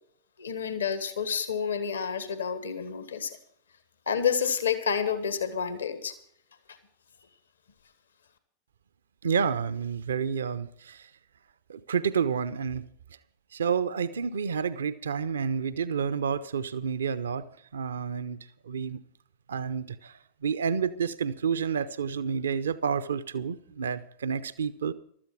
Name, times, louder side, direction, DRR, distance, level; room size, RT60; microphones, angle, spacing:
voice 1, 0.4-3.4 4.1-6.1 6.7-6.8, left 7 dB, 70° left, 1.6 m, -29 dB
voice 2, 9.2-11.1 11.7-12.8 13.5-17.5 17.7-18.4 18.6-19.0 19.5-24.9, right 6 dB, 65° right, 0.8 m, -29 dB
15.0 x 13.0 x 4.8 m
figure-of-eight pair, 90°, 0 cm